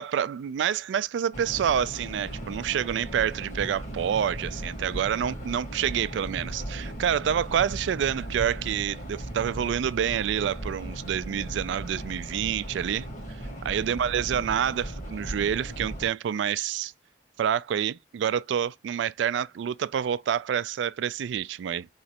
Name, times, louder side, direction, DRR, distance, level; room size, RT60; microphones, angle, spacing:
voice 1, 0.0-16.9 17.4-21.9, right 9 dB, 80° right, 0.3 m, -28 dB
sound 1, 1.3-16.1, right 1 dB, 40° left, 1.5 m, -37 dB
4.9 x 3.1 x 2.8 m
head